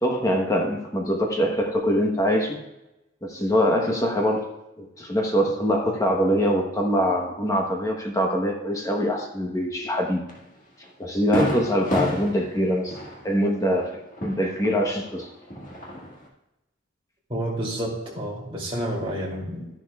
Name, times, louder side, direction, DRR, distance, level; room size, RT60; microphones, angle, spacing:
voice 1, 0.0-2.6 3.2-4.5 4.8-10.2 11.0-13.0 13.2-15.3, equal, 15° left, 1 dB, 1.0 m, -23 dB
Fireworks, 10.3-10.4 10.8-10.9 11.3-15.1 15.4-16.3, equal, 40° left, 1.8 m, -31 dB
voice 2, 17.3-19.7, right 1 dB, 25° right, -3 dB, 2.6 m, -29 dB
13.0 x 10.5 x 2.3 m, 0.97 s
head